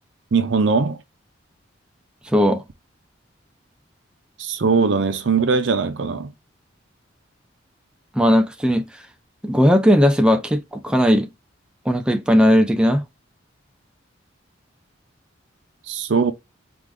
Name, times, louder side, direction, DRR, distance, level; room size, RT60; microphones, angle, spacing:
voice 1, 0.3-1.0 4.4-6.3 15.9-16.3, right 4 dB, 65° right, 0.6 m, -20 dB
voice 2, 2.3-2.6 8.1-8.9 9.4-11.3 11.9-13.0, equal, 5° right, 0.4 m, -17 dB
4.7 x 2.5 x 3.8 m
head